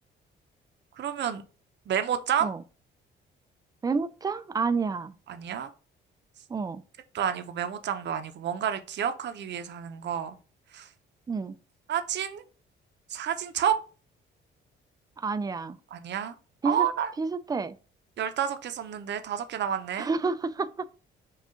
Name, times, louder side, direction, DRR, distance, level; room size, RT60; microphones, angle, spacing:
voice 1, 1.0-1.4 1.9-2.5 5.3-5.7 7.1-10.4 10.7-10.9 11.9-12.4 13.1-13.8 15.9-16.3 16.6-17.1 18.2-20.1, right 9 dB, 65° right, 0.7 m, -29 dB
voice 2, 3.8-5.1 6.5-6.8 11.3-11.6 15.2-15.8 16.6-16.9 17.2-17.8 20.0-20.9, right 4 dB, 20° right, 0.4 m, -29 dB
5.5 x 2.4 x 3.7 m
cardioid pair, 90°, 20 cm